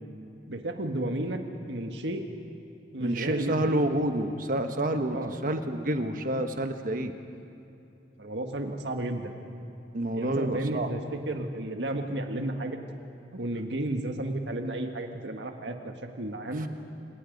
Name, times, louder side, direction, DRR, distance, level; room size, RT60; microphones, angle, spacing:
voice 1, 0.5-1.4 1.7-2.2 2.9-3.7 5.1-5.3 8.2-9.3 10.1-12.8 13.3-16.7, right 1 dB, 90° right, 4 dB, 1.7 m, -32 dB
voice 2, 3.0-5.2 5.4-7.1 9.9-10.9 16.6-16.7, right 1 dB, 50° right, 7 dB, 1.2 m, -28 dB
29.5 x 18.5 x 5.3 m, 2.8 s
head